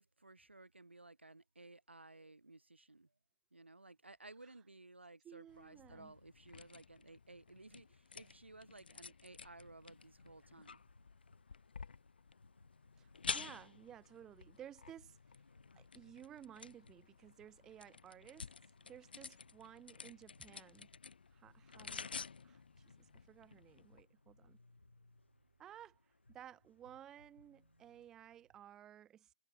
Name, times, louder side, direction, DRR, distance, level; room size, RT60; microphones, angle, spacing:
voice 1, 0.0-3.1 3.5-10.8, right 2 dB, 80° right, 1.5 m, -57 dB
voice 2, 5.2-6.1 13.0-15.4 15.7-18.5 18.9-20.9 21.3-22.1 22.4-24.6 25.6-29.3, right 10 dB, 10° right, 0.3 m, -56 dB
sound 1, 5.5-24.0, left 5 dB, 55° left, 0.9 m, -51 dB
sound 2, 9.3-28.1, left 2 dB, 80° left, 3.1 m, -70 dB
sound 3, 19.3-20.7 22.0-23.3 24.7-26.0 27.3-28.6, right 7 dB, 45° right, 7.0 m, -79 dB
figure-of-eight pair, 145°, 6 cm